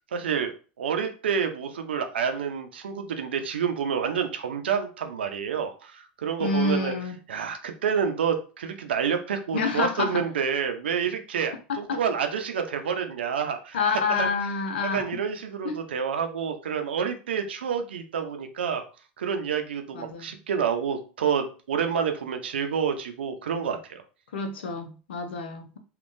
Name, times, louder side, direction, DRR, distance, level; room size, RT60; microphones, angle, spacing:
voice 1, 0.1-0.5 0.8-6.9 7.3-13.8 14.1-14.3 14.9-18.8 19.2-24.0, right 7 dB, 90° right, 6 dB, 0.6 m, -28 dB
voice 2, 6.4-7.2 9.5-10.2 11.9-12.0 13.7-15.0 15.6-15.7 19.9-20.4 24.3-25.8, left 4 dB, 85° left, 6 dB, 0.7 m, -28 dB
3.6 x 2.4 x 2.6 m, 0.36 s
hypercardioid pair, 100°, 6 cm